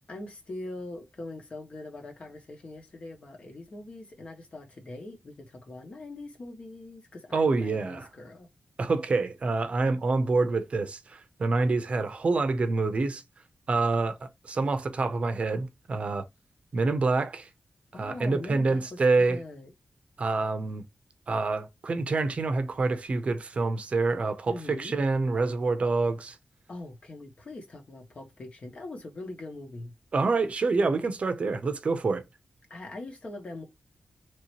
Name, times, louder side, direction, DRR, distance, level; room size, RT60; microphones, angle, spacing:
voice 1, 0.1-8.5 17.9-19.7 24.5-25.0 26.7-29.9 32.7-33.7, left 2 dB, 45° left, 1.2 m, -42 dB
voice 2, 7.3-8.1 8.8-13.2 13.7-14.2 14.4-16.2 16.7-17.5 18.0-19.4 20.2-20.8 21.3-26.4 30.1-32.2, right 3 dB, 45° right, 0.6 m, -27 dB
3.1 x 2.8 x 3.0 m
wide cardioid pair, 120°, 3 cm